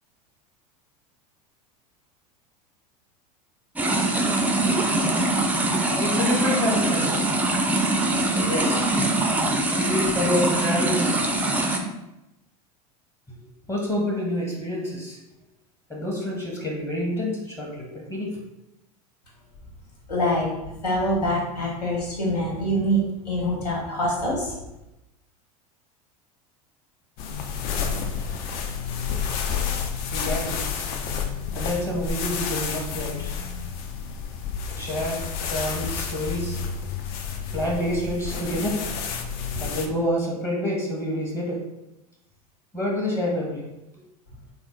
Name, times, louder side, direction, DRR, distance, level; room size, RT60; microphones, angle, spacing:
sound 1, 3.8-11.8, right 2 dB, 10° right, 0.4 m, -23 dB
voice 1, 6.0-7.3 8.2-9.0 9.4-11.1 13.3-13.4 13.6-15.2 15.9-18.4 30.1-30.6 31.5-33.3 34.7-36.6 37.4-39.0 39.5-41.6 42.7-43.6, left 1 dB, 15° left, -3 dB, 0.8 m, -28 dB
voice 2, 20.1-20.5 20.8-24.5, equal, 90° left, -4 dB, 1.4 m, -25 dB
sound 2, 27.2-39.9, left 6 dB, 50° left, 0.5 m, -30 dB
3.4 x 2.0 x 3.8 m, 0.93 s
hypercardioid pair, 95°, 20 cm